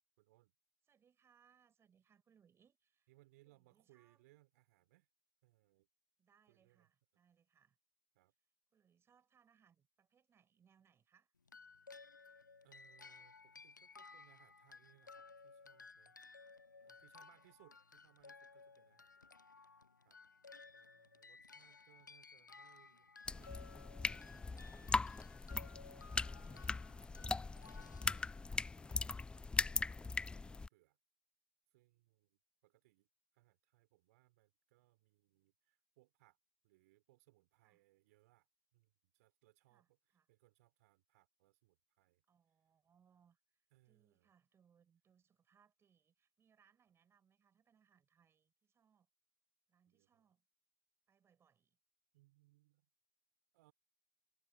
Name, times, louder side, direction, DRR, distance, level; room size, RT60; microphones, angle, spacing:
voice 1, 0.2-0.5 3.1-5.1 5.4-5.9 6.5-6.9 8.1-8.3 12.6-16.2 16.8-19.8 20.0-20.2 20.7-25.0 25.9-27.9 28.4-30.0 30.3-31.0 31.7-33.1 33.3-36.4 36.6-38.5 38.7-42.2 43.7-44.3 49.9-50.1 52.1-52.9 53.5-53.7, right 19 dB, 55° right, 4.4 m, -71 dB
voice 2, 0.8-3.1 3.4-4.2 6.2-7.8 8.7-11.3 17.3-17.4 20.8-21.0 37.6-37.8 39.7-40.3 42.3-49.1 49.7-50.4 51.1-51.8, right 7 dB, 25° right, 7.6 m, -74 dB
sound 1, 11.5-28.9, left 4 dB, 80° left, 0.9 m, -59 dB
sound 2, 23.3-30.7, left 3 dB, 10° left, 0.4 m, -40 dB
figure-of-eight pair, 80°, 10 cm